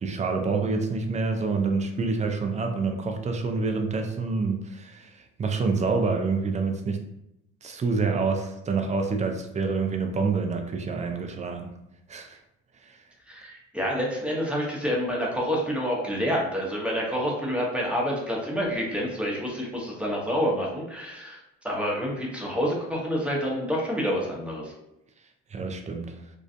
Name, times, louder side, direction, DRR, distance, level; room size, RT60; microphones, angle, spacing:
voice 1, 0.0-7.0 7.6-11.7 12.1-12.4 12.7-13.0 25.5-26.3, right 4 dB, 25° right, 4 dB, 0.4 m, -27 dB
voice 2, 13.3-21.4 21.6-24.7, equal, 5° right, -3 dB, 0.9 m, -28 dB
2.4 x 2.3 x 2.5 m, 0.84 s
supercardioid pair, 70°, 29 cm